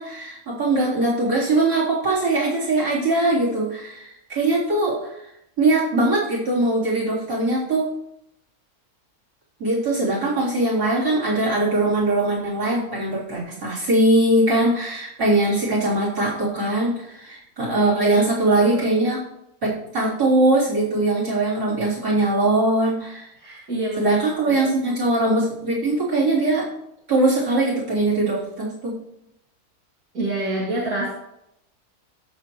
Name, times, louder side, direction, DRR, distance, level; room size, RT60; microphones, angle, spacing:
voice 1, 0.0-5.1 5.6-7.9 9.6-19.2 19.9-23.3 24.0-26.7 27.1-29.0, right 2 dB, 90° right, -8 dB, 4.3 m, -21 dB
voice 2, 23.4-24.1 24.5-24.7 30.1-31.1, right 1 dB, 75° right, -6 dB, 2.6 m, -27 dB
17.0 x 6.7 x 3.2 m, 0.81 s
omnidirectional pair, 1.6 m